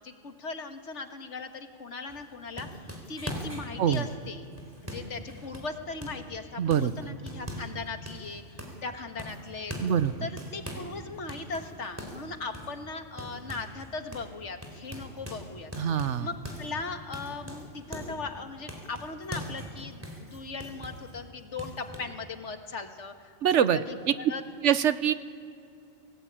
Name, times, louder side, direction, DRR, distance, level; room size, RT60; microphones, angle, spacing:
voice 1, 0.0-4.5 4.8-9.8 10.2-23.7 24.2-24.4, left 4 dB, 75° left, 6 dB, 1.9 m, -39 dB
boxing bag in a room, 2.1-6.3 6.7-7.8 8.1-8.9 9.2-11.0 11.3-13.9 14.1-14.3 14.6-18.2 18.7-21.2 21.6-22.0, equal, 10° right, 3.9 m, -41 dB
voice 2, 6.6-7.1 9.8-10.1 15.8-16.3 23.4-24.1 24.6-25.1, right 9 dB, 80° right, 13 dB, 1.2 m, -24 dB
27.0 x 18.5 x 8.8 m, 2.5 s
omnidirectional pair, 1.2 m